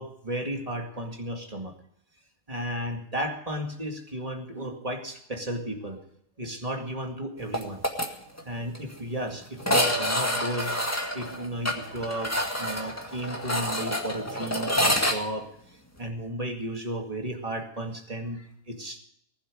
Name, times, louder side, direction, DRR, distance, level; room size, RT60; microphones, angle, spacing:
voice 1, 0.0-1.7 2.5-6.0 6.4-7.8 8.5-10.8 11.1-15.5 16.0-19.0, right 1 dB, 25° right, 2 dB, 2.2 m, -34 dB
sound 1, 7.5-8.1 8.4-8.5 8.7-8.8 9.6-15.2, equal, 10° left, 1.9 m, -27 dB
19.5 x 11.5 x 4.9 m, 0.72 s
omnidirectional pair, 1.4 m